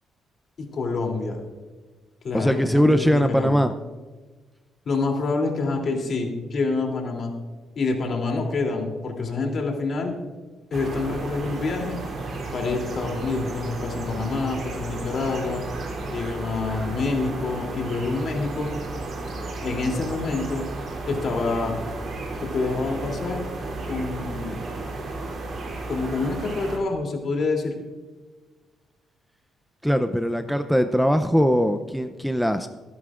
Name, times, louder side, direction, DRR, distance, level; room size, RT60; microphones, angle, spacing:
voice 1, 0.6-1.4 2.2-3.6 4.8-7.3 7.7-10.2 10.7-12.0 12.5-15.6 16.1-18.7 19.6-20.6 21.1-21.8 22.4-23.4 23.9-24.8 25.9-27.7, left 3 dB, 55° left, 1 dB, 3.0 m, -27 dB
voice 2, 2.3-3.7 29.8-32.7, equal, ahead, 7 dB, 0.6 m, -21 dB
sound 1, 10.7-26.8, right 2 dB, 55° right, 3.2 m, -33 dB
24.0 x 11.0 x 2.5 m, 1.3 s
cardioid pair, 90°, 0 cm